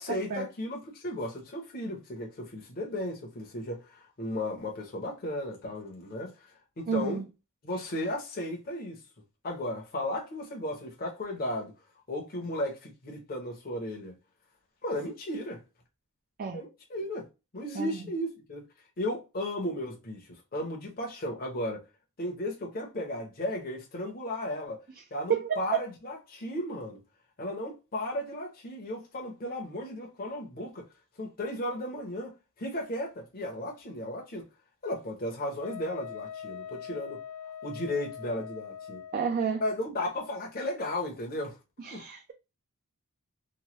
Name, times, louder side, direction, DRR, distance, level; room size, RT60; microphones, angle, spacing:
voice 1, 0.0-6.5 6.8-7.2 7.6-9.0 9.4-11.7 12.1-14.2 14.8-15.6 16.5-17.3 17.5-18.7 19.0-21.8 22.2-24.8 25.1-27.0 27.4-30.9 31.2-34.5 34.8-37.2 37.6-39.0 39.6-41.6 41.9-42.0, left 1 dB, 40° left, 0.7 m, -35 dB
voice 2, 6.9-7.2 16.4-16.6 17.8-17.9 25.3-25.6 39.1-39.6 41.8-42.3, right 6 dB, 40° right, 0.4 m, -30 dB
Wind instrument woodwind instrument, 35.6-39.3, left 8 dB, 85° left, 0.5 m, -42 dB
3.0 x 2.2 x 2.9 m
head